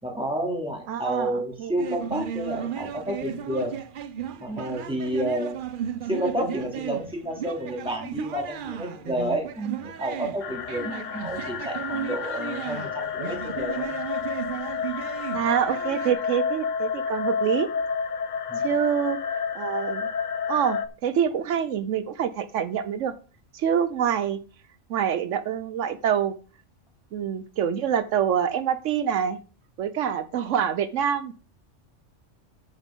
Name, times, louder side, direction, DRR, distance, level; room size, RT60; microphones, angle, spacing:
voice 1, 0.0-3.8 4.4-5.6 6.1-13.9 18.5-18.7, right 1 dB, 5° right, -1 dB, 2.7 m, -30 dB
voice 2, 0.9-1.3 1.6-1.7 15.3-17.7 18.6-20.1 20.5-23.1 23.5-24.4 24.9-26.3 27.1-29.4 29.8-31.3, right 8 dB, 80° right, 13 dB, 1.0 m, -26 dB
sound 1, 1.8-16.1, right 9 dB, 55° right, 0.7 m, -35 dB
sound 2, 10.4-20.9, left 6 dB, 50° left, 0.6 m, -30 dB
9.0 x 8.1 x 3.7 m, 0.36 s
omnidirectional pair, 1.3 m